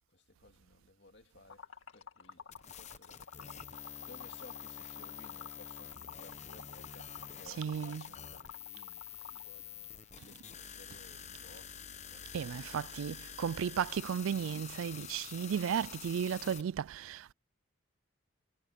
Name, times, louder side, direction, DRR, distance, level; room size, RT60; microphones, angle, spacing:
voice 1, 0.1-12.5, left 2 dB, 55° left, 2.5 m, -59 dB
Liquid, 1.5-9.5, left 5 dB, 85° left, 2.4 m, -51 dB
sound 1, 2.5-16.6, left 8 dB, 35° left, 1.0 m, -48 dB
voice 2, 7.6-8.0 12.3-17.3, right 8 dB, 85° right, 0.3 m, -34 dB
head